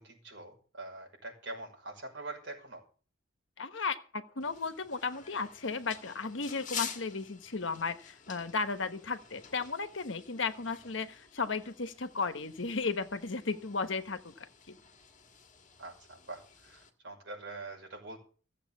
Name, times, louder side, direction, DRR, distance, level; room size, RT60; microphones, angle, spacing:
voice 1, 0.0-2.8 15.8-18.2, right 2 dB, 65° right, 2 dB, 5.8 m, -44 dB
voice 2, 3.6-14.8, left 4 dB, 70° left, 10 dB, 1.2 m, -35 dB
sound 1, 4.4-16.9, left 7 dB, 40° left, 1.8 m, -48 dB
15.5 x 7.7 x 7.3 m, 0.39 s
head